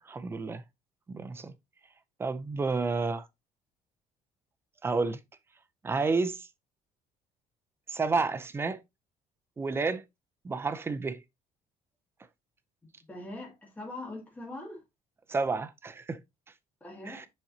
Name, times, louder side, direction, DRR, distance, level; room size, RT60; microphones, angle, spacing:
voice 1, 0.1-0.6 1.1-1.5 2.2-3.3 4.8-5.2 5.8-6.5 7.9-8.8 9.6-10.0 10.4-11.2 15.3-16.2 17.1-17.3, right 4 dB, 15° right, 0.5 m, -30 dB
voice 2, 13.1-14.8 16.8-17.3, left 2 dB, 10° left, 2.2 m, -42 dB
7.2 x 5.3 x 2.8 m
cardioid pair, 165°, 14 cm